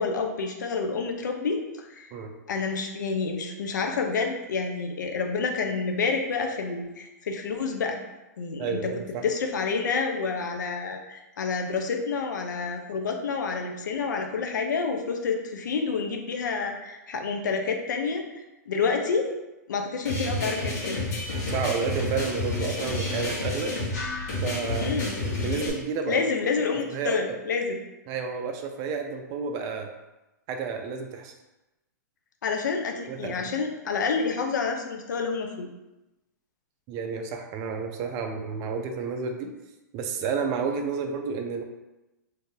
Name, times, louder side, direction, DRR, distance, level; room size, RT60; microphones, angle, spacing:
voice 1, 0.0-2.1 2.5-8.0 8.4-8.8 9.2-18.2 18.7-19.3 19.7-21.1 24.8-25.2 26.1-27.8 32.4-35.7, left 5 dB, 75° left, 3 dB, 0.5 m, -28 dB
voice 2, 8.6-9.2 21.5-23.7 24.4-24.9 25.2-26.2 26.9-27.2 28.1-29.9 30.5-31.3 33.1-33.5 36.9-39.5 39.9-41.6, right 5 dB, 35° right, 4 dB, 0.4 m, -31 dB
sound 1, 20.1-25.7, left 2 dB, 60° left, 1.2 m, -30 dB
2.6 x 2.5 x 3.7 m, 1.0 s
hypercardioid pair, 125°, 10 cm